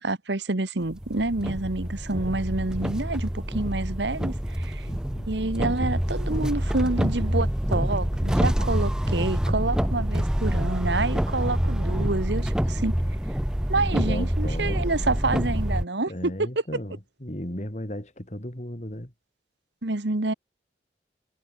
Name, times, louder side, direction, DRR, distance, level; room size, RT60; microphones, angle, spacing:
voice 1, 0.0-4.9 5.3-13.0 13.7-16.3 19.8-20.3, right 2 dB, 85° right, 1.5 m, -28 dB
sound 1, 0.9-15.8, equal, 5° right, 0.4 m, -26 dB
voice 2, 4.8-5.3 13.9-15.1 16.1-19.1, equal, 40° left, 3.3 m, -36 dB
head